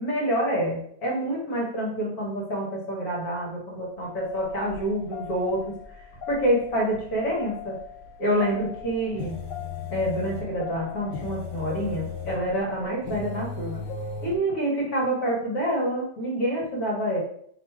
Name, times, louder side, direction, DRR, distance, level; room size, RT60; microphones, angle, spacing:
voice 1, 0.0-5.6 6.3-7.8 8.2-9.4 9.9-13.8 14.2-17.2, right 1 dB, 60° left, -3 dB, 1.5 m, -27 dB
sound 1, 4.0-14.4, left 5 dB, 75° left, 1.2 m, -37 dB
3.0 x 2.5 x 4.4 m, 0.67 s
omnidirectional pair, 1.9 m